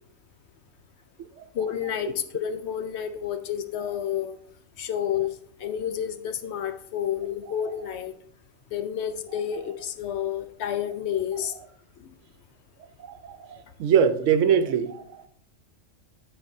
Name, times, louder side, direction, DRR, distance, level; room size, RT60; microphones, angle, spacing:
voice 1, 1.5-4.4 4.8-5.3 5.6-8.1 8.7-11.5, left 9 dB, 65° left, 0.8 m, -30 dB
voice 2, 13.0-15.3, right 8 dB, 75° right, 0.9 m, -23 dB
10.0 x 5.2 x 2.6 m
omnidirectional pair, 1.3 m